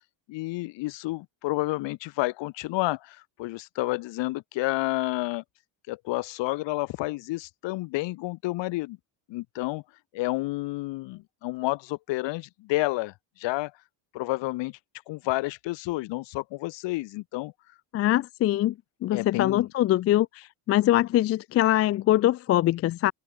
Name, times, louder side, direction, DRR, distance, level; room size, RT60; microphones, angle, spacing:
voice 1, 0.3-5.4 5.9-9.0 9.3-9.8 10.1-13.7 14.1-14.8 15.1-17.5 19.1-19.7, left 20 dB, 60° left, 1.7 m, -30 dB
voice 2, 17.9-18.8 19.0-23.1, left 14 dB, 30° left, 0.4 m, -23 dB
cardioid pair, 175°, 48 cm